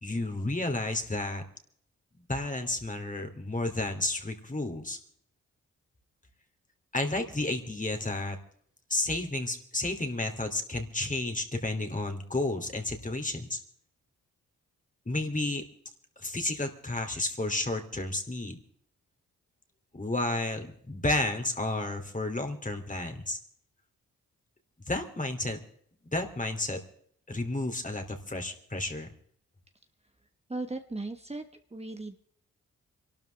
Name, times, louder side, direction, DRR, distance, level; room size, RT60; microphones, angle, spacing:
voice 1, 0.0-1.4 2.3-5.0 6.9-8.4 8.9-13.6 15.1-15.6 16.2-18.6 19.9-23.4 24.9-25.6 26.1-26.8 27.3-29.1, left 2 dB, 25° left, 5 dB, 2.9 m, -31 dB
voice 2, 30.5-32.2, right 2 dB, 20° right, 6 dB, 1.4 m, -37 dB
27.0 x 12.5 x 3.5 m, 0.68 s
supercardioid pair, 45°, 33 cm